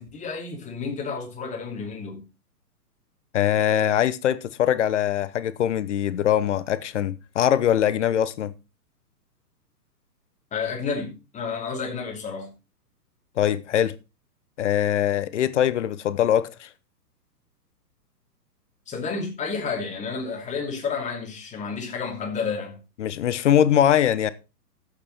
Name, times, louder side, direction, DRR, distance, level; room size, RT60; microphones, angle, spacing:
voice 1, 0.0-2.2 10.5-12.5 18.9-22.8, left 5 dB, 15° left, 2.8 m, -31 dB
voice 2, 3.3-8.5 13.4-14.0 14.6-16.7 23.0-24.3, left 10 dB, 45° left, 0.9 m, -22 dB
12.0 x 8.1 x 4.2 m
figure-of-eight pair, 120°, 49 cm